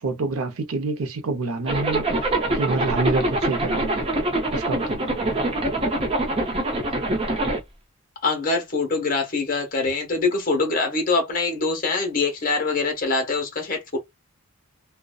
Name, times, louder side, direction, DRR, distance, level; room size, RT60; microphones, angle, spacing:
voice 1, 0.0-2.0 2.5-4.0 4.5-5.4, right 3 dB, 80° right, 0.6 m, -27 dB
Zipper (clothing), 1.7-7.6, right 1 dB, 25° right, 0.6 m, -24 dB
voice 2, 8.2-14.0, left 3 dB, 40° left, 0.9 m, -24 dB
2.6 x 2.1 x 2.3 m
head